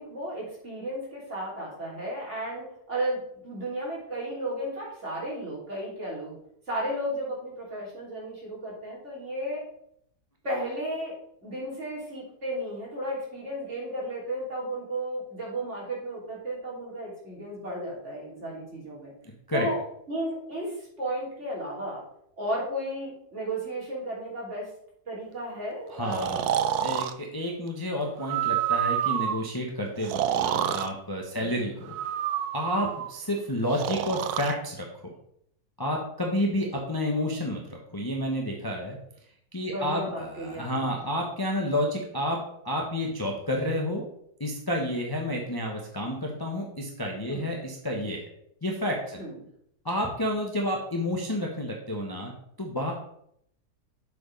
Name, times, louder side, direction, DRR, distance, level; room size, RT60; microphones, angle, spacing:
voice 1, 0.0-6.4 6.7-9.6 10.4-11.1 11.4-19.1 19.5-19.8 20.1-22.0 22.4-24.7 25.1-26.5 31.3-31.6 32.7-32.9 39.6-40.9 47.3-47.5 49.2-49.3, right 1 dB, 45° right, -5 dB, 3.5 m, -34 dB
voice 2, 25.9-26.4 26.8-31.9 32.5-35.1 35.8-39.0 39.5-42.4 42.6-44.0 44.4-48.2 48.6-49.2 49.8-52.3 52.6-52.9, left 1 dB, 15° left, 0 dB, 0.9 m, -30 dB
Breathing, 26.1-27.1 28.2-29.4 30.0-30.9 31.9-33.1 33.7-34.5, right 10 dB, 80° right, 1.1 m, -28 dB
7.2 x 4.9 x 5.2 m, 0.70 s
omnidirectional pair, 1.6 m